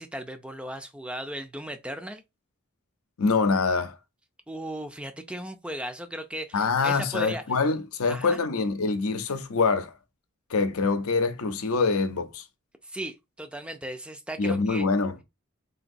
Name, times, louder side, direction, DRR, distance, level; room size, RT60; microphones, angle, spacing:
voice 1, 0.0-2.2 4.5-7.4 8.1-8.4 12.8-14.9, right 1 dB, 5° right, 0.4 m, -36 dB
voice 2, 3.2-4.0 6.5-10.0 10.5-12.4 14.4-15.2, left 4 dB, 80° left, 0.6 m, -25 dB
4.0 x 2.6 x 2.6 m
head